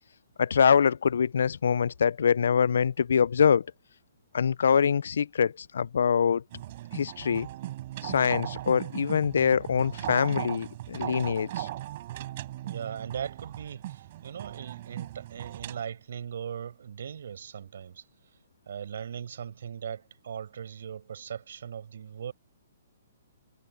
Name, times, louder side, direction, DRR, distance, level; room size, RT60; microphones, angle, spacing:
voice 1, 0.4-3.7 4.3-6.4 6.9-7.5 8.0-11.7, left 7 dB, 70° left, 0.5 m, -24 dB
sound 1, 6.5-15.8, right 15 dB, 45° right, 5.0 m, -38 dB
voice 2, 12.6-18.0 18.7-22.3, right 8 dB, 65° right, 5.3 m, -39 dB
hypercardioid pair, 135°, 0 cm